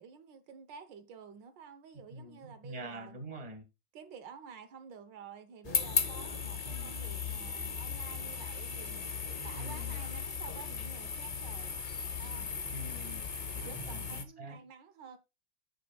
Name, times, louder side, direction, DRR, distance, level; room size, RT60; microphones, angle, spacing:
voice 1, 0.0-3.2 3.9-9.0 9.4-11.8 12.2-12.5 13.5-15.2, right 6 dB, 90° right, 1.7 m, -50 dB
voice 2, 1.9-3.6 6.6-6.9 9.5-10.0 12.7-13.2 13.6-14.6, right 1 dB, 20° right, 1.6 m, -45 dB
sound 1, 5.6-14.2, left 5 dB, 80° left, 0.3 m, -36 dB
9.6 x 8.3 x 2.3 m
omnidirectional pair, 1.9 m